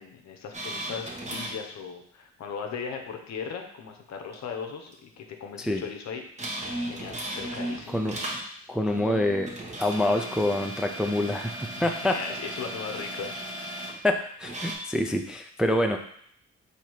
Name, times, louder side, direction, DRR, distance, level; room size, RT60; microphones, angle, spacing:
voice 1, 0.0-6.2 6.9-8.1 11.8-13.4, left 6 dB, 65° left, 4 dB, 0.8 m, -38 dB
sound 1, 0.5-1.6 4.3-4.4 4.9-5.0 6.4-8.4 8.8-14.0 14.4-14.8, right 1 dB, 25° right, 1.0 m, -36 dB
voice 2, 8.7-9.5 9.8-12.1 14.0-16.0, left 1 dB, 5° right, 4 dB, 0.3 m, -26 dB
4.0 x 2.8 x 4.6 m, 0.65 s
cardioid pair, 90°, 30 cm